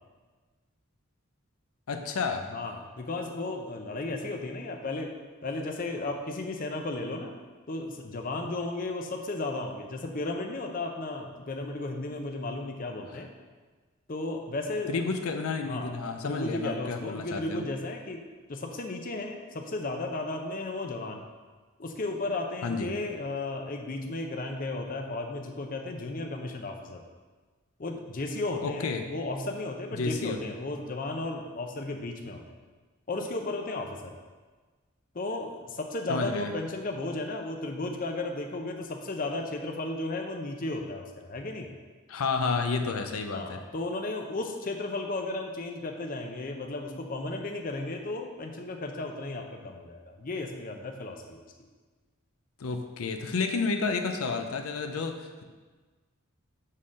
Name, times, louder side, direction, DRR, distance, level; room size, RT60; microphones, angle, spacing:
voice 1, 1.9-2.6 13.1-13.2 14.9-17.7 22.6-22.9 28.6-29.0 29.9-30.4 36.1-36.5 42.1-43.6 52.6-55.4, left 4 dB, 80° left, 5 dB, 0.6 m, -31 dB
voice 2, 2.5-5.1 5.4-7.3 7.7-13.3 14.1-14.9 15.6-18.2 18.5-21.2 21.8-27.0 27.8-32.4 33.1-34.1 35.1-41.7 43.3-51.5, left 2 dB, 40° left, 3 dB, 0.6 m, -34 dB
6.5 x 3.7 x 6.3 m, 1.4 s
head